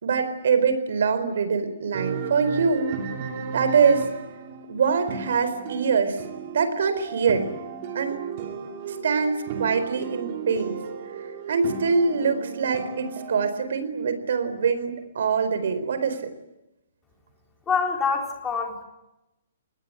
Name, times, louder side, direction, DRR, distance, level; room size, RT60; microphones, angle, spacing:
voice 1, 0.0-2.9 3.5-4.1 4.7-6.2 6.5-7.5 7.9-8.2 9.0-10.8 11.5-16.3, right 5 dB, 60° right, 11 dB, 4.4 m, -24 dB
sound 1, 1.9-13.5, right 6 dB, 30° right, 2.9 m, -35 dB
voice 2, 17.7-18.8, left 5 dB, 10° left, 1 dB, 3.8 m, -25 dB
24.0 x 20.5 x 9.3 m, 0.93 s
hypercardioid pair, 175°, 0 cm